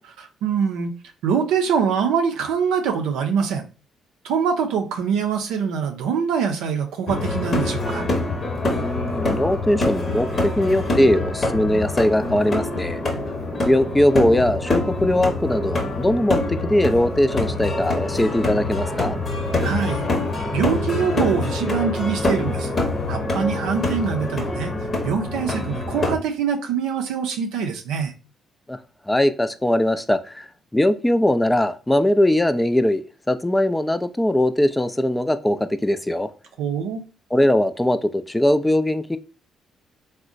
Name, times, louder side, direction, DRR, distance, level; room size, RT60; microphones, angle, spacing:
voice 1, 0.2-0.9 1.2-3.7 4.2-8.1 19.6-20.1 20.5-22.7 23.1-24.7 25.0-28.1 36.6-37.0, right 6 dB, 80° right, 0.5 m, -24 dB
sound 1, 7.1-26.2, left 2 dB, 45° left, 0.8 m, -25 dB
voice 2, 8.8-13.0 13.6-19.2 28.7-28.8 29.1-36.3 37.3-39.2, left 1 dB, 10° left, 0.3 m, -20 dB
3.6 x 2.1 x 2.5 m
hypercardioid pair, 50°, 0 cm